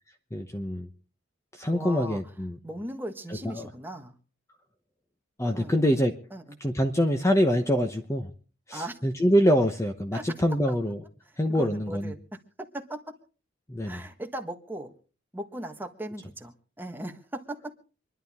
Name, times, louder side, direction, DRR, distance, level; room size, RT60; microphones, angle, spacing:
voice 1, 0.3-0.9 1.6-2.5 3.6-3.7 5.4-6.1 6.6-8.3 8.7-11.0 11.4-12.1 13.7-14.0, equal, 15° left, 6 dB, 0.9 m, -25 dB
voice 2, 1.7-2.2 2.6-4.1 5.5-5.8 6.3-6.6 8.7-9.0 10.1-10.2 10.7-10.8 11.2-12.4 12.7-13.1 13.8-14.9 15.3-17.7, right 1 dB, 10° right, 5 dB, 1.4 m, -38 dB
26.5 x 11.0 x 3.6 m, 0.37 s
head